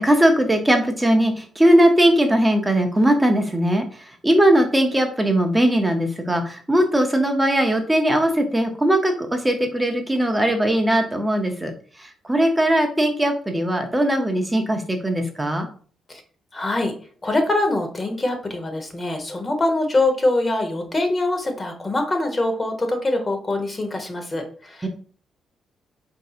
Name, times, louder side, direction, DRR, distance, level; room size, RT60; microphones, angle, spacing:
voice 1, 0.0-3.8 4.2-11.7 12.0-15.7 24.8-24.9, right 1 dB, 15° right, 5 dB, 0.7 m, -19 dB
voice 2, 16.5-16.9 17.2-24.9, left 2 dB, 30° left, 5 dB, 1.1 m, -23 dB
5.1 x 2.7 x 2.4 m, 0.43 s
cardioid pair, 70°, 0 cm